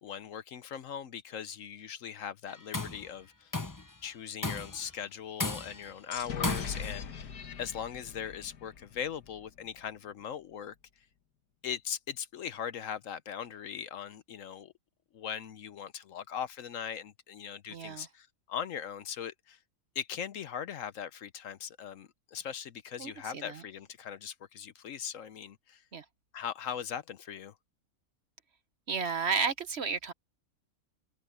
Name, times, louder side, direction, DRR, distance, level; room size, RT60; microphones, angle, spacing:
voice 1, 0.0-3.5 4.0-10.7 11.6-14.7 15.1-19.6 19.9-25.8 26.3-27.5, left 8 dB, 65° left, 1.1 m, -40 dB
Tools, 2.5-3.0 3.5-3.9 4.4-4.9 5.4-5.9 6.4-7.0, left 2 dB, 15° left, 0.7 m, -34 dB
sound 1, 6.1-9.8, left 7 dB, 85° left, 1.9 m, -41 dB
voice 2, 17.7-18.1 23.0-23.6 25.9-26.0 28.9-30.1, right 5 dB, 50° right, 1.1 m, -32 dB
omnidirectional pair, 1.6 m